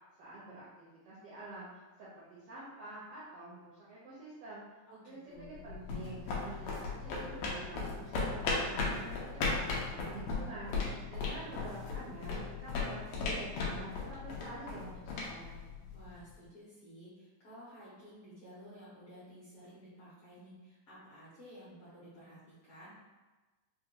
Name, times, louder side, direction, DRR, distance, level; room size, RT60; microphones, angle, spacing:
voice 1, 0.2-4.6 5.0-15.7, right 2 dB, 85° right, -9 dB, 1.3 m, -48 dB
voice 2, 4.9-5.7 15.9-22.9, equal, 70° left, -11 dB, 1.4 m, -53 dB
sound 1, 5.4-16.2, left 3 dB, 85° left, 1.5 m, -37 dB
5.2 x 2.2 x 2.9 m, 1.2 s
omnidirectional pair, 3.9 m